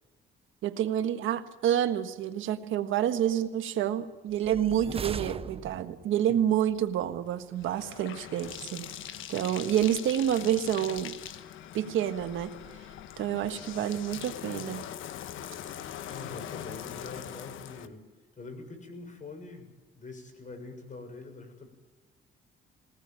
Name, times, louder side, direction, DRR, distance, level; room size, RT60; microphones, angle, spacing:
voice 1, 0.6-8.9 9.3-11.2 11.7-12.5 13.2-14.9, right 10 dB, 80° right, 9 dB, 1.5 m, -28 dB
sound 1, 4.3-6.1, right 5 dB, 30° right, 0.8 m, -38 dB
Bathtub (filling or washing), 6.5-17.9, left 10 dB, 80° left, 1.3 m, -42 dB
voice 2, 16.1-18.1 18.4-21.7, left 3 dB, 40° left, 6 dB, 6.7 m, -44 dB
22.0 x 18.5 x 9.0 m, 1.2 s
cardioid pair, 90°, 20 cm